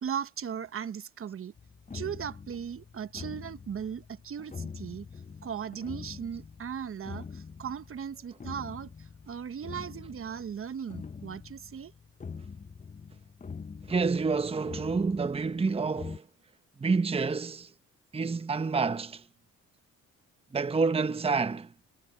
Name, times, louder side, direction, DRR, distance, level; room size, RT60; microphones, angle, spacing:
voice 1, 0.0-1.5 1.9-5.1 5.4-11.9, right 8 dB, 45° right, 1.1 m, -37 dB
sound 1, 1.6-16.2, left 5 dB, 25° left, 0.9 m, -45 dB
voice 2, 13.9-16.2 16.8-17.7 18.1-19.2 20.5-21.7, right 4 dB, 20° right, 0.9 m, -28 dB
cardioid pair, 90°, 30 cm